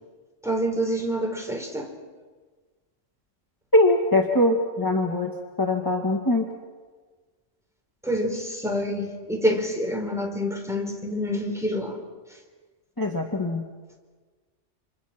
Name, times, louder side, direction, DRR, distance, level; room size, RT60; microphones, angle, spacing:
voice 1, 0.4-1.9 8.0-12.0, equal, ahead, 2 dB, 4.2 m, -27 dB
voice 2, 3.7-5.3 5.6-6.4 13.0-13.6, left 1 dB, 15° left, 1 dB, 2.0 m, -22 dB
30.0 x 28.0 x 6.0 m, 1.4 s
omnidirectional pair, 1.3 m